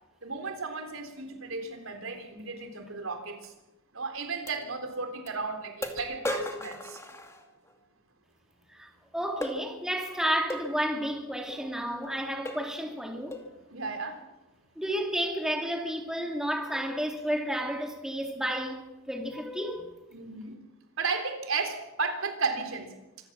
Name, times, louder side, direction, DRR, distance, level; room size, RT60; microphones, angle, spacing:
voice 1, 0.2-3.5 3.9-7.0 13.7-14.2 20.1-20.6 21.0-22.9, right 4 dB, 75° right, 3.7 m, -34 dB
sound 1, 3.4-3.5 4.5-4.6 5.3-5.4 5.8-7.8 9.4-9.6 10.5-10.7 11.5-11.6 12.0-12.2 12.5-12.8 13.3-13.5, left 1 dB, 15° left, 2.4 m, -36 dB
voice 2, 8.7-13.4 14.8-18.8 19.1-19.9, equal, 5° right, 2.8 m, -31 dB
25.5 x 15.5 x 7.4 m
head